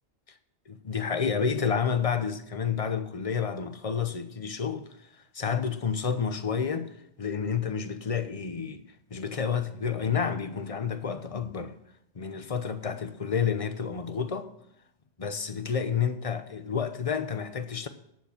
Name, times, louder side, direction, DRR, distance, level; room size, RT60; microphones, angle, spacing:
voice 1, 0.7-4.9 5.3-8.8 9.1-11.7 12.1-14.5 15.2-17.9, left 6 dB, 35° left, 0.8 m, -30 dB
11.5 x 7.5 x 7.3 m
omnidirectional pair, 1.2 m